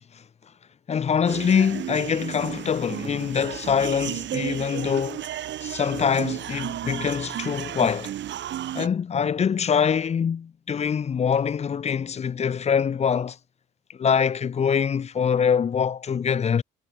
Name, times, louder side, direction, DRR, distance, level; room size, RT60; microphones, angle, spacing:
voice 1, 0.9-5.3 5.6-8.1 8.7-13.4 13.9-16.6, left 7 dB, 35° left, 0.5 m, -24 dB
sound 1, 1.3-8.9, right 12 dB, 65° right, 1.1 m, -33 dB
cardioid pair, 90°, 20 cm